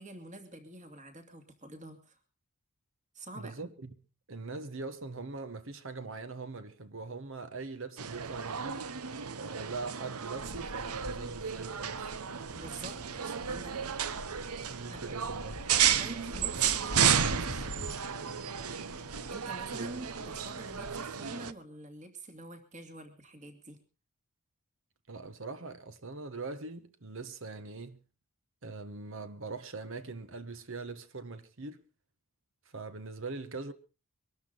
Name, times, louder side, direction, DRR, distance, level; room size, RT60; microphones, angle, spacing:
voice 1, 0.0-2.2 3.1-3.7 12.5-14.6 14.9-15.7 16.0-17.9 19.3-23.8, right 2 dB, 35° right, 2.6 m, -47 dB
voice 2, 3.4-3.9 4.3-8.8 9.4-12.1 14.7-15.6 25.1-28.0 28.6-31.8 32.7-33.7, right 3 dB, 60° right, 1.2 m, -42 dB
sound 1, 8.0-21.5, right 8 dB, 85° right, 0.9 m, -33 dB
sound 2, 10.4-21.1, left 2 dB, 40° left, 0.8 m, -46 dB
23.0 x 12.5 x 4.0 m
head